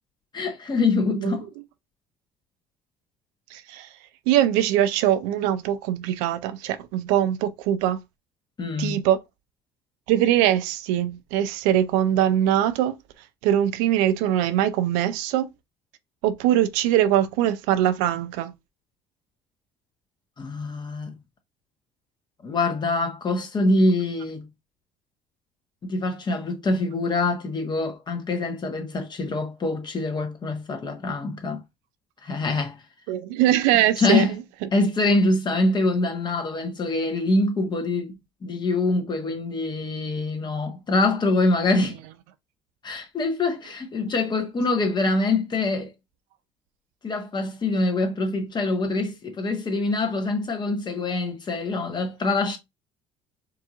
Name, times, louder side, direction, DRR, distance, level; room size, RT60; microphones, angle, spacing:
voice 1, 0.3-1.4 8.6-9.0 20.4-21.1 22.4-24.5 25.8-31.6 32.2-32.8 34.0-34.3 34.7-42.0 42.8-45.9 47.0-52.6, left 2 dB, 35° left, 1.3 m, -24 dB
voice 2, 3.5-3.9 4.3-8.0 8.8-9.2 10.1-12.9 13.4-15.5 16.2-18.5 33.1-34.3 41.7-41.9, right 11 dB, 80° right, 0.4 m, -22 dB
4.6 x 2.8 x 2.4 m
hypercardioid pair, 65°, 13 cm